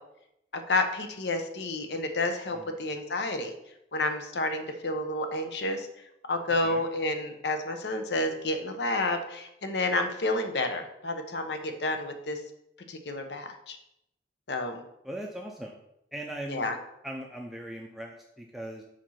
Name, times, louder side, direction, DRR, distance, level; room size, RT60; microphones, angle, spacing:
voice 1, 0.5-3.5 3.9-5.9 6.3-12.4 12.9-13.8 14.5-14.8 16.5-16.8, left 2 dB, 80° left, 6 dB, 0.9 m, -30 dB
voice 2, 15.0-15.8 16.1-16.7 17.0-18.8, right 1 dB, ahead, 0 dB, 0.5 m, -39 dB
5.0 x 4.4 x 5.7 m, 0.80 s
head